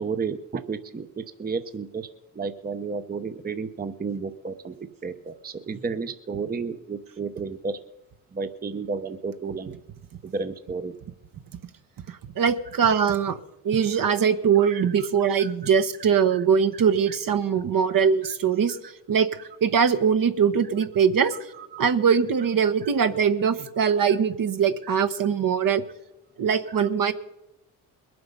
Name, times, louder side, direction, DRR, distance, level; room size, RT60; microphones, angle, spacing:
voice 1, 0.0-2.1 2.4-4.8 5.0-7.8 8.3-9.7 10.2-10.9 14.0-14.1 14.6-14.8 15.4-15.5 21.2-21.3 21.7-21.9, right 5 dB, 20° right, 9 dB, 0.8 m, -32 dB
voice 2, 12.1-13.4 13.6-18.8 19.1-19.3 19.6-21.3 21.8-25.8 26.4-27.1, right 7 dB, 50° right, 9 dB, 1.1 m, -22 dB
21.5 x 7.8 x 5.4 m, 0.94 s
supercardioid pair, 70°, 42 cm